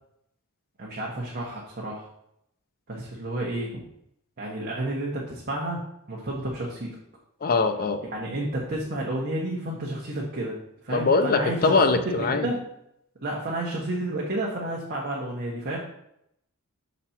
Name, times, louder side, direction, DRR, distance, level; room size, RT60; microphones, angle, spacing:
voice 1, 0.8-2.0 2.9-3.8 4.4-7.0 8.0-10.6 10.8-11.8 12.0-12.6 13.2-15.8, right 1 dB, 45° right, -3 dB, 1.1 m, -31 dB
voice 2, 7.4-8.0 10.9-12.5, left 3 dB, 40° left, 7 dB, 0.6 m, -22 dB
6.8 x 4.2 x 4.3 m, 0.77 s
head